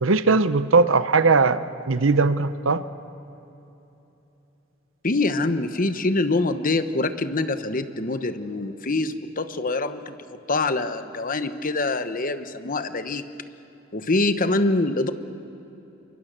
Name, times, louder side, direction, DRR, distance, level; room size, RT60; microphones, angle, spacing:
voice 1, 0.0-2.8, right 4 dB, 75° right, 13 dB, 0.8 m, -19 dB
voice 2, 5.0-13.3 13.9-15.1, left 2 dB, 45° left, 10 dB, 1.1 m, -25 dB
28.5 x 23.5 x 6.7 m, 3.0 s
head